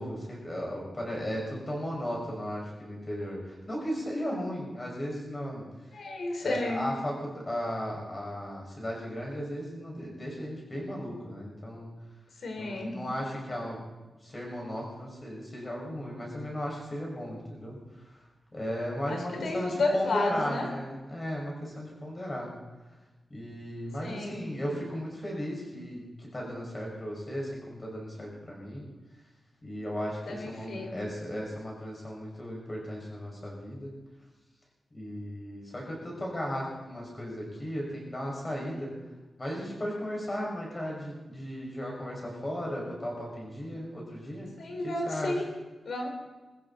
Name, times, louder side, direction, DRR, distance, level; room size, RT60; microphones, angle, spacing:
voice 1, 0.0-5.7 6.4-11.9 12.6-13.8 14.2-17.8 18.5-22.5 23.3-28.8 29.6-33.9 34.9-38.9 39.4-44.5 44.8-45.3, equal, 25° left, -2 dB, 6.4 m, -36 dB
voice 2, 5.9-6.8 12.4-12.9 19.1-20.7 24.0-24.4 30.3-31.1 44.6-45.4 45.8-46.1, left 2 dB, 75° left, 3 dB, 4.3 m, -32 dB
22.5 x 15.0 x 4.3 m, 1.2 s
wide cardioid pair, 175°, 0 cm